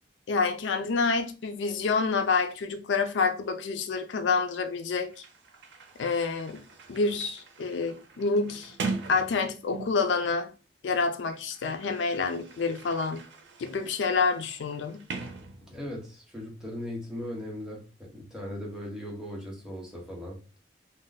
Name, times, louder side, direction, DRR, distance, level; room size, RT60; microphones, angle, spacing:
voice 1, 0.3-5.1 6.0-6.6 6.9-8.7 9.1-10.5 10.8-13.2 13.6-15.0, left 4 dB, 85° left, 0.4 m, -28 dB
Sliding door, 4.8-4.9 5.1-10.2 11.1-16.1, right 4 dB, 85° right, 0.6 m, -41 dB
voice 2, 15.6-20.4, left 1 dB, 5° right, 0.9 m, -38 dB
2.5 x 2.1 x 3.9 m
head